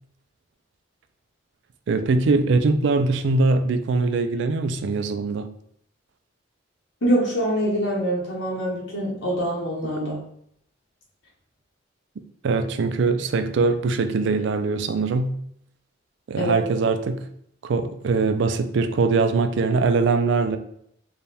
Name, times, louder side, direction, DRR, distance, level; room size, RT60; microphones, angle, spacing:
voice 1, 1.9-5.5 12.4-15.4 16.3-17.3 17.6-20.6, right 3 dB, 65° right, 0.4 m, -22 dB
voice 2, 7.0-10.2 16.4-16.6, right 1 dB, 70° left, 0.9 m, -24 dB
3.4 x 2.2 x 4.1 m
head